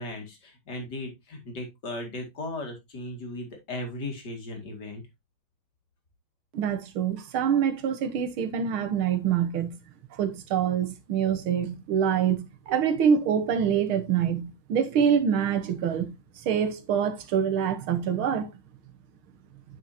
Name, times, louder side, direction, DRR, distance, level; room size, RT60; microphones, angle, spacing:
voice 1, 0.0-5.0, left 1 dB, 55° left, 2.8 m, -37 dB
voice 2, 6.5-9.7 10.1-16.2 16.4-18.5, right 8 dB, 85° right, 2.0 m, -25 dB
9.1 x 6.6 x 2.8 m
omnidirectional pair, 2.2 m